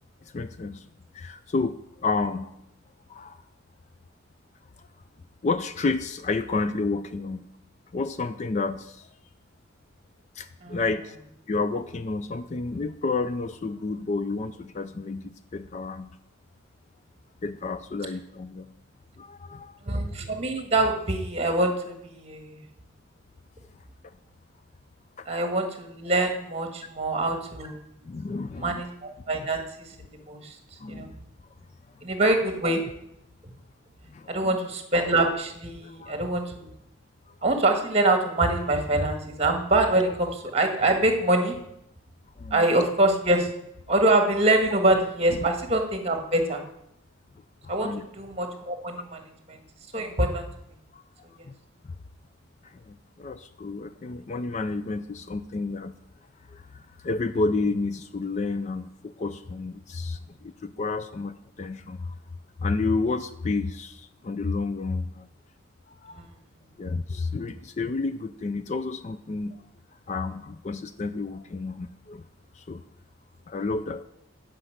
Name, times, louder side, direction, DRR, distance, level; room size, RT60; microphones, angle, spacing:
voice 1, 0.3-0.9 1.1-2.5 3.1-3.4 5.4-7.5 7.9-9.1 10.4-11.2 11.5-16.1 17.4-18.7 19.2-19.7 25.2-25.3 28.0-28.8 30.8-31.1 34.1-34.6 35.8-36.3 42.4-42.6 45.3-45.4 47.8-48.1 50.9-51.0 51.5-51.6 52.6-56.0 56.5-62.1 62.6-65.3 65.9-66.2 66.8-69.6 70.1-72.2 72.5-72.8 73.5-74.0, left 3 dB, 35° left, 11 dB, 0.4 m, -30 dB
voice 2, 19.8-22.6 25.3-27.8 28.6-30.6 30.9-31.1 32.0-32.8 34.3-36.7 37.4-41.6 42.5-43.5 43.9-46.6 47.7-47.9 48.2-49.2 49.5-49.6 49.9-50.5 66.2-66.3, right 2 dB, 30° right, 5 dB, 1.6 m, -24 dB
9.9 x 5.2 x 7.9 m, 0.80 s
head